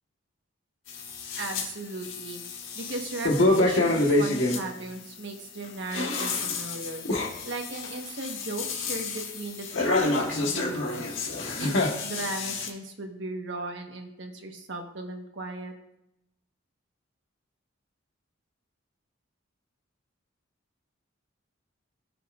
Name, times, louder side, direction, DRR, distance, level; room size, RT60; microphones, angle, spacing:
sound 1, 0.9-1.7 2.0-4.6 5.7-12.7, left 2 dB, 70° left, 1.5 m, -27 dB
voice 1, 1.3-2.4 2.7-11.1 11.5-15.7, right 2 dB, 60° right, 3 dB, 1.4 m, -37 dB
18.0 x 6.8 x 2.5 m, 0.84 s
head